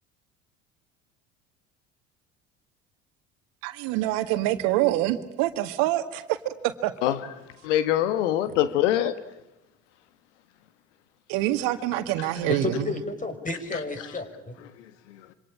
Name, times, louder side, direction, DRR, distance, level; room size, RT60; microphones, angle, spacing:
voice 1, 3.6-6.4 6.6-6.9 11.3-12.9, right 15 dB, 65° right, 1.9 m, -25 dB
voice 2, 7.6-9.2 12.2-12.3 13.7-13.8 14.8-15.3, left 12 dB, 70° left, 1.6 m, -25 dB
voice 3, 12.5-14.6, left 2 dB, 20° left, 5.8 m, -31 dB
27.0 x 25.0 x 8.8 m
hypercardioid pair, 70°, 37 cm